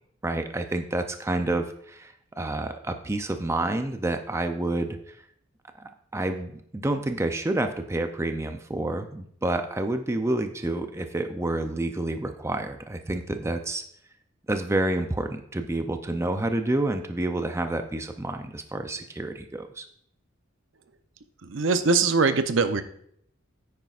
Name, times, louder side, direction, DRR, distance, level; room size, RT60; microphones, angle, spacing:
voice 1, 0.2-5.2 6.1-13.8 14.5-19.9, right 2 dB, 15° right, 7 dB, 0.5 m, -29 dB
voice 2, 21.4-22.8, right 4 dB, 65° right, 10 dB, 0.7 m, -22 dB
9.6 x 9.1 x 2.4 m, 0.67 s
head